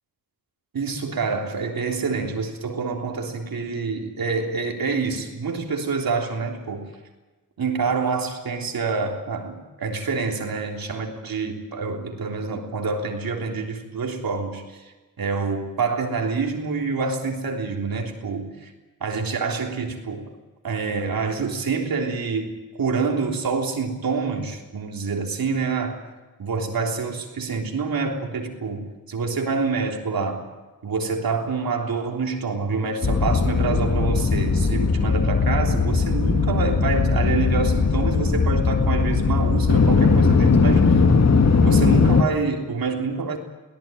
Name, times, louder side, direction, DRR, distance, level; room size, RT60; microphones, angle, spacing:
voice 1, 0.7-6.9 7.6-14.8 15.2-18.7 19.0-20.3 20.6-26.0 26.4-30.5 30.8-40.9 41.6-43.4, right 4 dB, 85° right, 2 dB, 3.5 m, -27 dB
sound 1, 33.0-42.2, left 4 dB, 50° left, 1.7 m, -19 dB
23.0 x 17.5 x 9.1 m, 1.2 s
wide cardioid pair, 90°, 34 cm